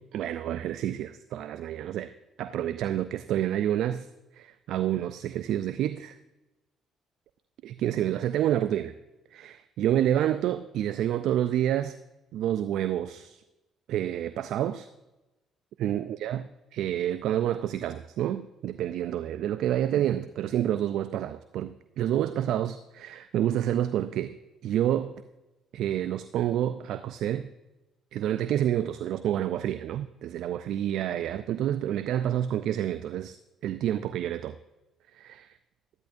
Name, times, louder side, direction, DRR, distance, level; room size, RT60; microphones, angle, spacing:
voice 1, 0.0-2.1 2.4-4.1 4.4-6.2 7.6-8.9 9.3-12.0 12.3-13.4 13.9-14.9 15.8-16.4 16.7-24.4 24.6-25.1 25.7-27.5 28.1-33.4 33.6-34.6 35.1-35.5, right 11 dB, 70° right, 12 dB, 0.4 m, -28 dB
12.5 x 10.5 x 2.6 m, 1.0 s
hypercardioid pair, 55°, 0 cm